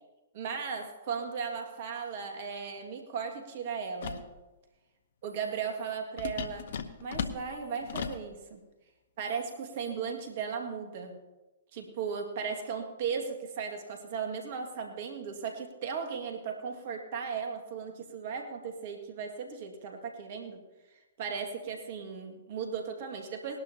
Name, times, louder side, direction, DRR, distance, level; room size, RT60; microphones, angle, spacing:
voice 1, 0.3-4.3 5.2-6.7 7.0-8.6 9.2-11.2 11.7-20.6 21.2-23.6, right 6 dB, 50° right, 3 dB, 1.9 m, -36 dB
sound 1, 4.0-4.3 6.2-8.3, left 7 dB, 60° left, 0.8 m, -37 dB
20.0 x 12.0 x 2.8 m, 1.1 s
figure-of-eight pair, 115°, 0 cm